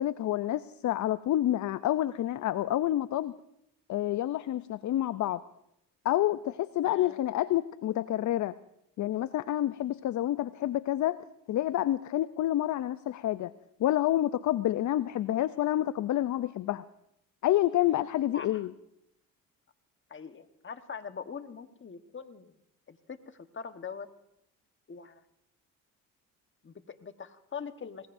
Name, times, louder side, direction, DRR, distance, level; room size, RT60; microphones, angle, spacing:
voice 1, 0.0-3.3 3.9-5.4 6.0-8.6 9.0-11.2 11.5-13.5 13.8-16.8 17.4-18.7, left 13 dB, 50° left, 15 dB, 0.5 m, -28 dB
voice 2, 6.8-7.2 18.3-18.7 20.1-22.5 22.9-24.1 24.9-25.2 26.6-28.1, left 6 dB, 30° left, 9 dB, 1.3 m, -43 dB
26.0 x 20.0 x 2.6 m, 0.81 s
supercardioid pair, 65°, 39 cm